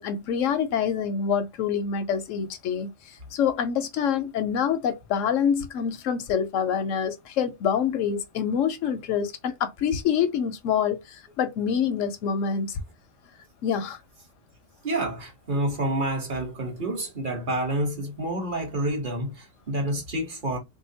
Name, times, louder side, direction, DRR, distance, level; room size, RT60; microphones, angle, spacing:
voice 1, 0.0-2.9 3.3-11.0 11.4-12.8 13.6-14.0, left 7 dB, 85° left, 1.0 m, -26 dB
voice 2, 14.8-20.6, right 1 dB, 45° right, 1.1 m, -28 dB
3.6 x 2.8 x 2.7 m
omnidirectional pair, 1.3 m